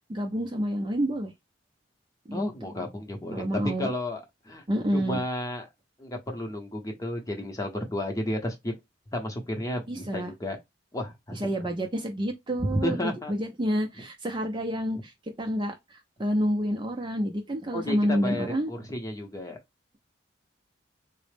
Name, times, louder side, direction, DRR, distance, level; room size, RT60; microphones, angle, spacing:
voice 1, 0.1-1.3 2.3-2.4 3.3-3.9 4.7-5.2 9.9-10.3 11.3-18.7, equal, 25° right, 0.4 m, -28 dB
voice 2, 2.3-3.4 3.8-4.6 4.9-5.7 6.0-8.7 9.1-10.6 10.9-11.5 12.8-13.3 17.7-19.6, left 1 dB, 15° left, 0.7 m, -32 dB
4.0 x 2.0 x 3.2 m
head